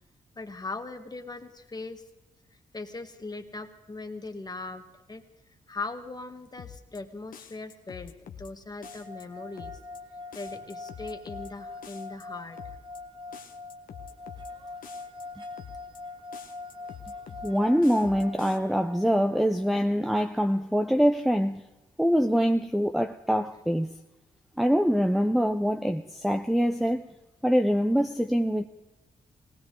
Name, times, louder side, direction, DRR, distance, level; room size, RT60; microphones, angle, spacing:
voice 1, 0.4-2.0 2.5-5.2 5.7-9.8 10.3-12.6, left 3 dB, 30° left, 1.6 m, -39 dB
sound 1, 6.6-7.0 7.3-8.5 8.8-9.2 9.6-10.0 10.3-11.5 11.8-12.2 12.6-13.0 13.3-14.5 14.8-15.2 15.6-16.0 16.3-17.5 17.8-18.6, left 8 dB, 75° left, 1.3 m, -46 dB
sound 2, 8.8-20.0, left 3 dB, 35° right, 1.5 m, -43 dB
voice 2, 17.4-21.6 22.0-23.9 24.6-27.1 27.4-28.7, equal, ahead, 0.7 m, -24 dB
19.0 x 19.0 x 3.9 m
cardioid pair, 65°, 14 cm